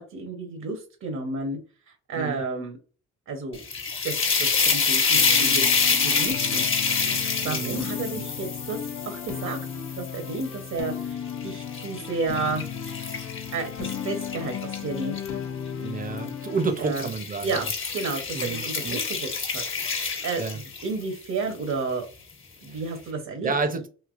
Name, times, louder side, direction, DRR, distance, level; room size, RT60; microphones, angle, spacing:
voice 1, 0.0-1.6 1.9-2.8 3.3-3.6 4.0-8.8 9.1-9.6 9.9-12.7 13.1-15.4 16.8-17.1 17.4-17.7 17.9-19.6 19.9-22.0 22.6-23.5, right 3 dB, 60° right, 0.9 m, -32 dB
sound 1, 3.5-10.8 11.3-15.3 16.2-16.4 16.8-21.0, left 5 dB, 45° left, 1.1 m, -27 dB
sound 2, 5.1-16.7, left 8 dB, 80° left, 0.7 m, -35 dB
voice 2, 7.4-7.9 8.1-8.3 15.7-17.6 18.3-19.0 20.4-20.6 22.7-22.8 23.4-23.9, right 4 dB, 30° right, 0.7 m, -30 dB
3.3 x 2.8 x 2.5 m
cardioid pair, 90°, 30 cm